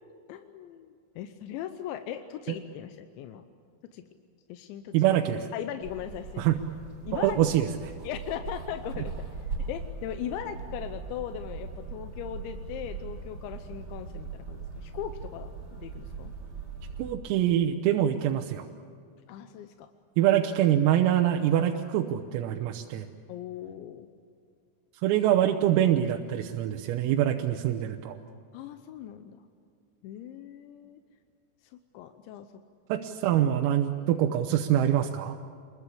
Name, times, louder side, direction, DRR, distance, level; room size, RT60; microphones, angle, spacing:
voice 1, 0.3-0.9 1.2-3.4 3.9-4.1 4.5-4.9 5.5-6.5 7.1-7.4 8.0-9.1 9.7-16.3 19.3-19.9 23.3-24.1 28.5-29.4 30.0-31.0 31.6-32.5, left 10 dB, 75° left, 8 dB, 2.9 m, -39 dB
voice 2, 4.9-5.5 6.4-6.6 7.1-7.7 17.0-18.7 20.2-23.1 25.0-28.2 32.9-35.4, right 11 dB, 85° right, 3 dB, 3.6 m, -24 dB
sound 1, 5.8-17.1, right 4 dB, 30° right, 4.6 m, -40 dB
28.0 x 22.0 x 8.5 m, 2.2 s
omnidirectional pair, 5.9 m